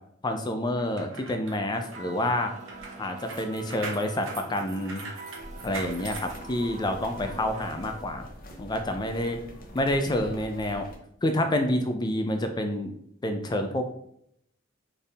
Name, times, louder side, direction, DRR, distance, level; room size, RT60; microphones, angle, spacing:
voice 1, 0.2-2.5 3.0-5.1 5.6-8.2 8.6-9.4 9.7-10.9 11.2-12.9 13.2-13.8, left 1 dB, 20° left, 5 dB, 0.4 m, -28 dB
sound 1, 0.8-7.1 7.5-7.7, right 3 dB, 65° right, 1.0 m, -42 dB
sound 2, 1.7-8.0, right 3 dB, 35° right, 0.6 m, -44 dB
sound 3, 5.4-11.0, equal, 45° left, 0.8 m, -45 dB
4.4 x 3.4 x 3.4 m, 0.70 s
head